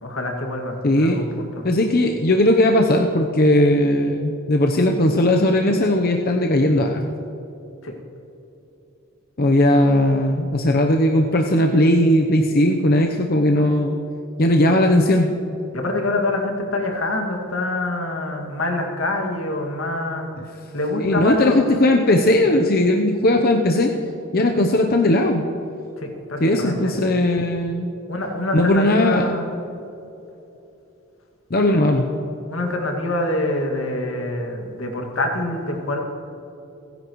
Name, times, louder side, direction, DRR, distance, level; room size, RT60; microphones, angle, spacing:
voice 1, 0.0-1.7 7.8-7.9 15.7-20.3 20.7-21.6 24.4-24.5 26.0-26.9 28.1-29.5 32.5-36.0, left 2 dB, 80° left, 1 dB, 2.2 m, -25 dB
voice 2, 0.8-1.2 1.6-7.0 9.4-14.0 14.4-15.3 21.0-23.9 24.3-25.5 26.4-27.9 28.5-29.3 31.5-32.0, left 1 dB, 50° left, 2 dB, 0.8 m, -18 dB
30.0 x 10.5 x 3.1 m, 2.9 s
head